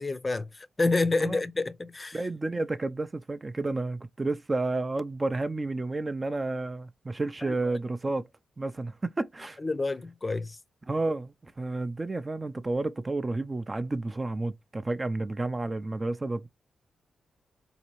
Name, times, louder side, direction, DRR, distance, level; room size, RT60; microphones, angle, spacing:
voice 1, 0.0-2.3 7.4-7.8 9.6-10.6, left 3 dB, 30° left, 0.5 m, -29 dB
voice 2, 2.1-8.2 8.6-9.6 10.9-16.5, right 2 dB, 30° right, 0.4 m, -31 dB
4.1 x 2.8 x 3.0 m
cardioid pair, 60°, 0 cm